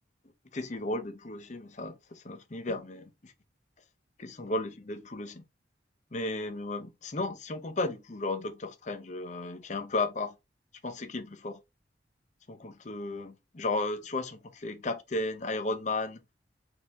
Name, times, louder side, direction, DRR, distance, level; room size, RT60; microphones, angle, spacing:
voice 1, 0.5-3.3 4.2-5.4 6.1-10.3 10.8-11.6 12.5-16.2, left 2 dB, 40° left, 0.7 m, -34 dB
4.5 x 2.8 x 3.4 m
head